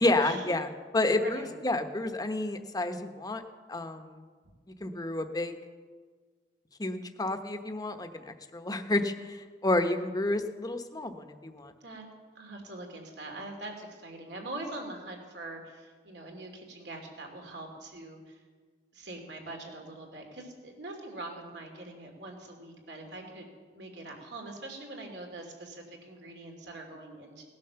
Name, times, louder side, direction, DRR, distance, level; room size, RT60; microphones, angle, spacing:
voice 1, 0.0-3.4 3.7-4.2 4.8-5.6 6.8-11.7, left 2 dB, 20° left, 7 dB, 1.0 m, -30 dB
voice 2, 1.1-1.5 11.8-12.0 12.3-18.4 18.9-23.5 23.7-27.4, right 2 dB, 75° right, 2 dB, 2.8 m, -43 dB
18.0 x 10.5 x 6.9 m, 1.5 s
head